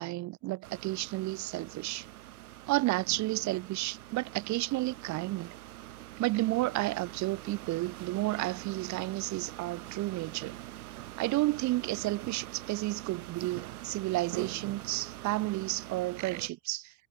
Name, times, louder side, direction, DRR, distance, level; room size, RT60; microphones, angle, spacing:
voice 1, 0.0-2.1 2.7-5.6 6.2-10.5 11.2-16.9, right 19 dB, 40° right, 1.8 m, -31 dB
sound 1, 0.6-16.5, right 15 dB, 80° right, 5.2 m, -45 dB
supercardioid pair, 130°, 43 cm